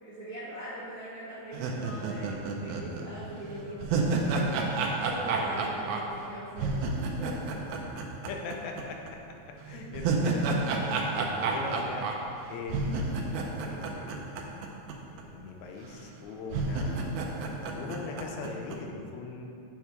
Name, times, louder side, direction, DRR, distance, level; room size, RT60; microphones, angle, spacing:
voice 1, 0.0-7.4 7.9-8.0, equal, 70° right, -10 dB, 0.7 m, -41 dB
sound 1, 1.5-8.8 9.1-9.2 9.7-14.9 15.2-15.3 16.0-16.1 16.5-18.8, right 3 dB, 85° right, 2.0 m, -31 dB
voice 2, 8.3-12.1 12.5-14.7 15.1-17.2 17.7-19.5, left 4 dB, 80° left, 2 dB, 1.9 m, -40 dB
7.0 x 3.6 x 4.5 m, 2.5 s
omnidirectional pair, 3.3 m